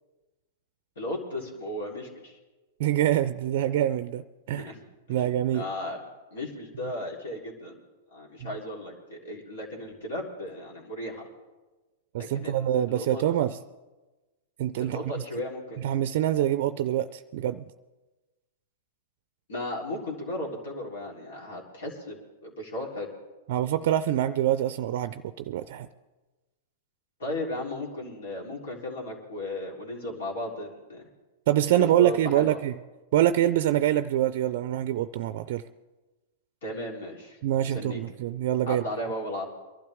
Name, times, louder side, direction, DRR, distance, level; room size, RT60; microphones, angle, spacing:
voice 1, 1.0-2.4 4.5-4.8 5.1-5.2 5.5-6.0 6.3-7.8 8.1-11.2 12.2-13.2 14.8-15.8 19.5-23.1 27.2-31.0 31.7-32.6 36.6-38.0 38.7-39.4, left 1 dB, 75° left, -1 dB, 3.6 m, -35 dB
voice 2, 2.8-4.7 5.1-5.7 12.1-13.6 14.6-15.1 15.8-17.7 23.5-25.9 31.5-32.7 33.1-35.6 37.4-38.8, right 12 dB, 60° right, 13 dB, 0.4 m, -25 dB
23.0 x 12.0 x 3.6 m, 1.2 s
hypercardioid pair, 115°, 0 cm